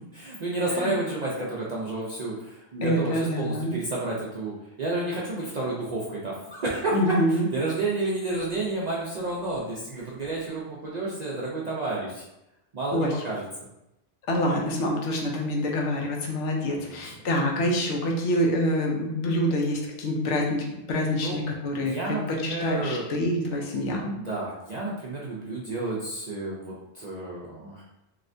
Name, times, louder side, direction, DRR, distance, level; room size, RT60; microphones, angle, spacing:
voice 1, 0.1-12.2 12.7-13.4 16.8-17.1 21.2-21.4 21.8-23.1 24.1-27.8, right 2 dB, 50° right, -5 dB, 0.5 m, -31 dB
voice 2, 2.8-3.8 6.9-7.5 12.9-13.1 14.3-22.2 22.4-24.1, equal, 75° left, 0 dB, 1.0 m, -26 dB
3.2 x 2.8 x 2.6 m, 0.90 s
omnidirectional pair, 1.3 m